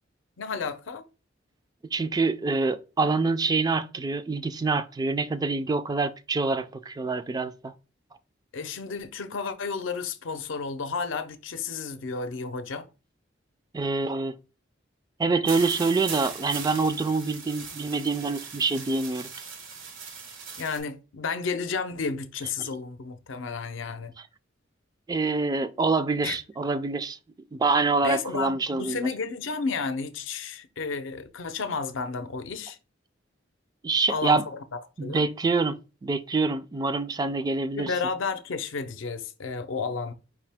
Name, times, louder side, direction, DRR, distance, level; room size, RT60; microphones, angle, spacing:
voice 1, 0.4-1.0 8.5-12.9 20.6-24.1 26.2-26.4 28.0-32.8 34.1-35.2 37.8-40.1, left 4 dB, 75° left, 0.6 m, -32 dB
voice 2, 1.9-7.7 13.7-14.3 15.2-19.3 22.6-22.7 25.1-27.2 27.5-29.1 33.8-34.4 35.0-35.8 36.0-37.9, right 3 dB, 20° right, 0.3 m, -26 dB
sound 1, 15.4-20.8, right 5 dB, 85° right, 1.1 m, -39 dB
4.9 x 2.8 x 3.4 m
head